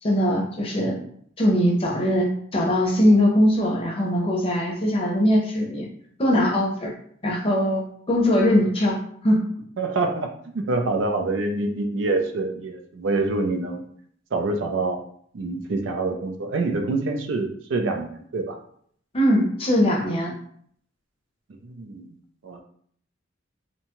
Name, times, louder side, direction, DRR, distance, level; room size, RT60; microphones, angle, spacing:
voice 1, 0.0-1.0 1.4-5.9 6.2-6.9 7.2-9.0 9.2-9.4 19.1-20.3, equal, 30° left, -1 dB, 0.6 m, -21 dB
voice 2, 9.8-13.8 14.3-15.0 15.3-18.6 21.6-22.1 22.4-22.6, right 3 dB, 75° right, 4 dB, 0.4 m, -26 dB
2.7 x 2.2 x 2.9 m, 0.62 s
head